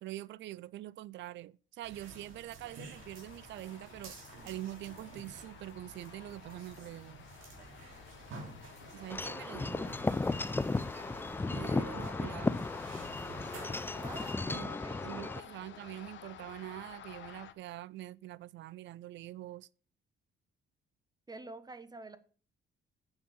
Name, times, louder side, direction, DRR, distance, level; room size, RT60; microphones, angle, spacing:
voice 1, 0.0-4.1 4.4-7.2 8.9-10.0 11.5-12.7 14.5-14.7 15.0-19.7, right 15 dB, 65° right, 0.4 m, -44 dB
sound 1, 1.8-14.3, right 3 dB, 80° right, 3.1 m, -52 dB
sound 2, 3.0-17.5, left 9 dB, 70° left, 1.0 m, -51 dB
Wind chime / Wind, 9.1-15.4, left 3 dB, 10° left, 0.3 m, -35 dB
voice 2, 13.9-15.5 21.3-22.2, right 2 dB, 20° right, 1.1 m, -49 dB
8.8 x 5.4 x 7.0 m
cardioid pair, 90°, 20 cm